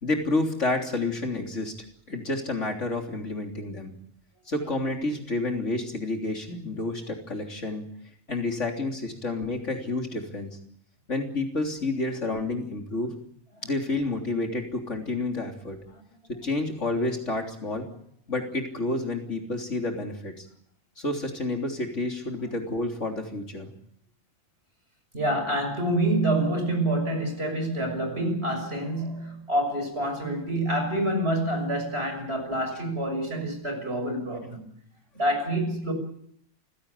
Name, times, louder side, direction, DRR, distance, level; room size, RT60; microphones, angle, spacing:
voice 1, 0.0-1.7 2.1-3.9 4.5-7.9 8.3-10.6 11.1-13.1 13.6-15.8 16.3-17.9 18.3-20.5 21.0-23.7, left 2 dB, 65° left, 3.8 m, -29 dB
voice 2, 25.1-34.7 35.1-35.9, right 1 dB, 50° right, 6.7 m, -27 dB
27.5 x 17.0 x 8.4 m
omnidirectional pair, 1.4 m